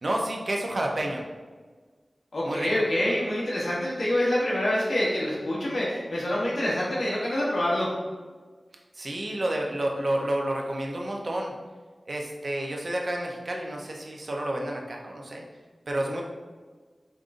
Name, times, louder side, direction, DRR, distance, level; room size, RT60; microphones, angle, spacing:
voice 1, 0.0-1.2 2.4-2.7 8.9-11.5 12.1-15.4 15.9-16.2, right 1 dB, 60° right, 0 dB, 0.6 m, -30 dB
voice 2, 2.3-7.9, left 1 dB, 85° left, -7 dB, 0.9 m, -26 dB
5.2 x 2.4 x 2.5 m, 1.4 s
wide cardioid pair, 75°, 0 cm